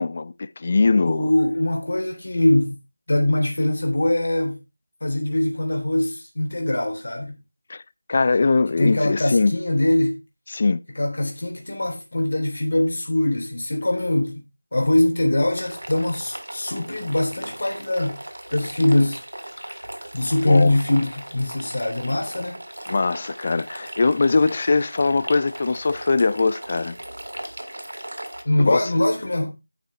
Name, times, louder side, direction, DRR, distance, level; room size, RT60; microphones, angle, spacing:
voice 1, 0.0-1.3 7.7-7.8 8.1-9.5 10.5-10.8 20.4-20.7 22.9-27.0 28.6-28.9, left 3 dB, 30° left, 0.4 m, -21 dB
voice 2, 1.0-2.7 3.1-4.6 5.0-7.4 8.8-10.2 10.9-14.4 14.7-18.2 18.5-19.5 20.1-22.6 28.4-29.5, left 1 dB, 55° left, 3.2 m, -22 dB
sound 1, 15.6-28.4, right 1 dB, 80° right, 1.7 m, -37 dB
9.2 x 8.9 x 3.2 m
figure-of-eight pair, 170°, 0 cm